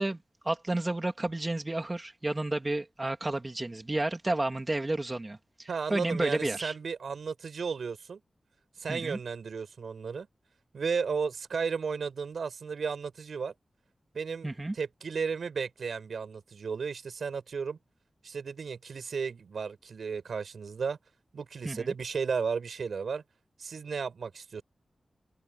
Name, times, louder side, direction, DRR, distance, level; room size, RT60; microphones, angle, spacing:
voice 1, 0.0-6.7 8.9-9.2 14.4-14.7 21.6-21.9, right 2 dB, 25° right, 2.5 m, -31 dB
voice 2, 5.7-8.2 8.8-10.3 10.7-13.5 14.1-14.5 14.7-17.8 18.2-21.0 21.3-23.2 23.6-24.6, right 5 dB, 85° right, 8.0 m, -34 dB
wide cardioid pair, 115°, 0 cm